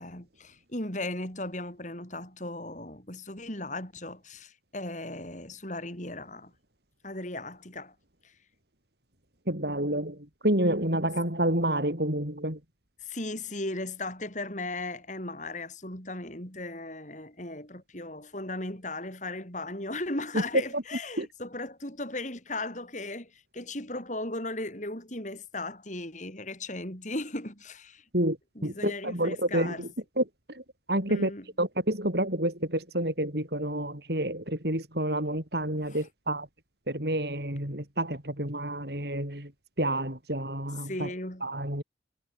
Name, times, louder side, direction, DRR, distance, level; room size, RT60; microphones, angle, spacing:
voice 1, 0.0-6.5 7.0-7.9 8.2-8.3 13.0-28.0 28.5-29.8 31.1-31.4 35.9-36.0 40.8-41.5, left 2 dB, 40° left, 6.9 m, -37 dB
voice 2, 9.5-12.6 20.3-20.4 20.7-20.8 21.2-21.3 28.1-28.4 28.6-29.9 30.2-31.3 31.6-36.5 36.9-39.5 39.8-41.1 41.4-41.8, right 1 dB, 60° right, 6.2 m, -29 dB
head